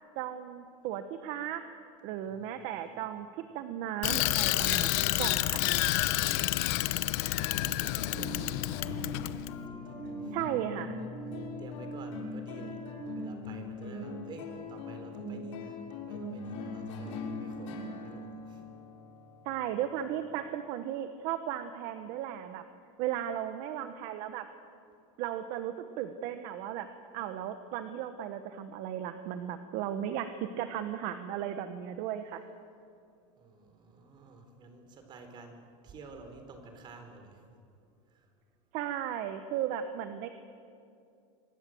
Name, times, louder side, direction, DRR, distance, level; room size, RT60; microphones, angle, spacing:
voice 1, 0.2-1.6 2.0-5.6 10.3-11.0 19.4-22.6 23.0-24.5 25.2-26.9 27.1-32.4 38.7-40.3, right 10 dB, 45° right, 9 dB, 1.2 m, -36 dB
voice 2, 2.3-3.2 7.5-8.6 9.7-10.4 11.6-12.8 13.1-18.6 33.4-37.5 38.1-38.3, right 3 dB, 30° right, 6 dB, 4.0 m, -51 dB
Bicycle, 4.0-9.5, left 17 dB, 55° left, 1.0 m, -29 dB
sound 1, 7.4-20.2, left 2 dB, 75° left, 6.5 m, -41 dB
25.5 x 22.0 x 7.9 m, 2.5 s
supercardioid pair, 155°, 16 cm